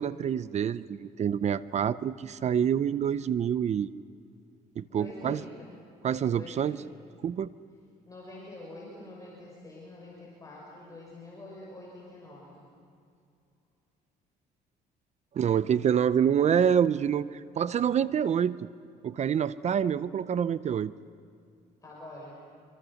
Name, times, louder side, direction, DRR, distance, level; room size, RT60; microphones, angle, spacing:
voice 1, 0.0-3.9 4.8-5.4 6.0-6.8 7.2-7.5 15.3-18.6 19.0-20.9, right 8 dB, 40° right, 16 dB, 0.6 m, -27 dB
voice 2, 4.9-5.8 6.3-6.8 8.0-12.7 21.8-22.4, left 2 dB, 20° left, -4 dB, 6.5 m, -46 dB
26.5 x 25.5 x 6.4 m, 2.4 s
cardioid pair, 110°, 17 cm